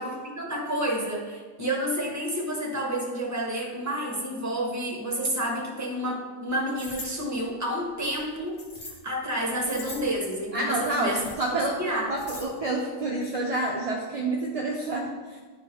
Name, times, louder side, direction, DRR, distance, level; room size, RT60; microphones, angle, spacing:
voice 1, 0.0-8.6 9.0-11.2 11.6-12.1, right 1 dB, 15° right, -1 dB, 1.1 m, -30 dB
sound 1, 6.7-7.1 8.1-9.0 9.4-10.2 10.8-11.4 11.9-12.4, left 2 dB, 45° left, 1.6 m, -41 dB
voice 2, 10.5-11.8 12.1-15.4, right 2 dB, 40° right, -3 dB, 0.5 m, -28 dB
10.0 x 3.6 x 4.4 m, 1.4 s
omnidirectional pair, 1.4 m